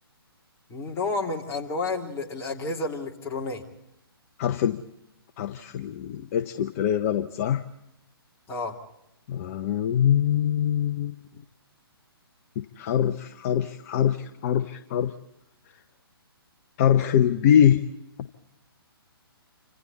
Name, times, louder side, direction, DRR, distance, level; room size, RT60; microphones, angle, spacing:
voice 1, 0.7-3.6 8.5-8.7, left 3 dB, 20° left, 0 dB, 2.8 m, -30 dB
voice 2, 4.4-4.8 5.4-7.6 9.3-11.1 12.6-15.1 16.8-17.8, left 9 dB, 35° left, 10 dB, 0.9 m, -23 dB
29.0 x 26.0 x 4.1 m, 0.84 s
figure-of-eight pair, 130°, 13 cm